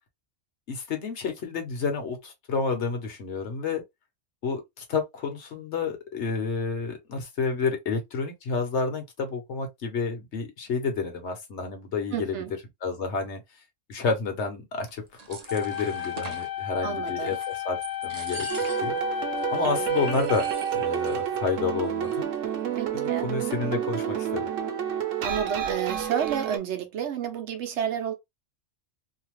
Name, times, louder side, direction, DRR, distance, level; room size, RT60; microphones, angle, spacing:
voice 1, 0.7-3.8 4.4-12.4 12.8-13.4 13.9-17.4 17.6-17.8 18.0-18.5 18.8-19.0 19.5-20.5 20.7-22.3 22.9-24.5, left 4 dB, 65° left, 1.2 m, -30 dB
voice 2, 12.1-12.5 16.8-17.4 22.7-23.3 25.2-28.1, right 8 dB, 70° right, 0.9 m, -30 dB
sound 1, 14.9-16.5 17.0-17.6 17.8-19.0 19.4-19.5 19.9-21.2 21.5-21.6 21.8-22.4, right 4 dB, 55° right, 0.4 m, -43 dB
sound 2, 15.5-20.5, left 11 dB, 85° left, 0.3 m, -33 dB
sound 3, 18.5-26.6, right 9 dB, 90° right, 1.1 m, -29 dB
2.8 x 2.2 x 3.0 m
omnidirectional pair, 1.3 m